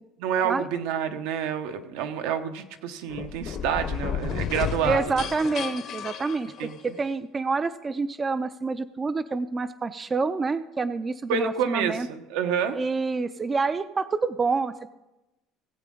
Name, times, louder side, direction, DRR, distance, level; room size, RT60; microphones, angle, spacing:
voice 1, 0.2-5.3 6.6-6.9 11.3-12.8, right 8 dB, 85° right, 8 dB, 1.0 m, -28 dB
sound 1, 3.1-7.1, left 8 dB, 40° left, 0.7 m, -32 dB
voice 2, 4.8-12.1 12.7-14.9, right 4 dB, 15° right, 13 dB, 0.3 m, -27 dB
17.5 x 8.4 x 3.7 m, 0.99 s
cardioid pair, 165°, 0 cm